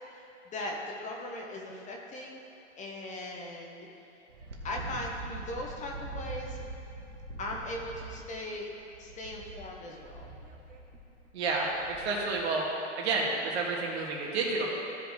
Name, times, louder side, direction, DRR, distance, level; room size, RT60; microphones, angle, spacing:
voice 1, 0.1-2.4 2.8-3.9 4.6-6.6 7.4-8.7 9.0-10.3, left 1 dB, 20° left, 0 dB, 0.9 m, -39 dB
Wind, 4.3-12.4, right 3 dB, 85° right, 1.3 m, -44 dB
voice 2, 11.3-12.7 13.0-14.7, right 3 dB, 60° right, -2 dB, 2.1 m, -30 dB
15.5 x 5.2 x 3.2 m, 2.8 s
hypercardioid pair, 115°, 36 cm